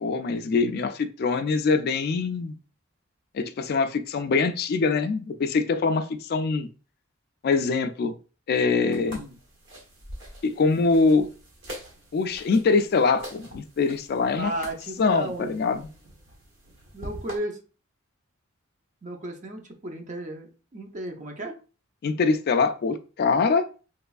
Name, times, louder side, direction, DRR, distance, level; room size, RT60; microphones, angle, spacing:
voice 1, 0.0-2.6 3.3-6.7 7.4-8.1 8.5-9.2 10.4-11.3 12.1-14.5 15.0-15.8 22.0-23.7, left 4 dB, 50° left, 0.3 m, -23 dB
sound 1, 8.9-17.4, equal, 65° right, 1.1 m, -44 dB
voice 2, 14.4-15.5 16.9-17.6 19.0-21.6, right 1 dB, 35° right, 0.6 m, -34 dB
3.3 x 3.0 x 2.3 m
head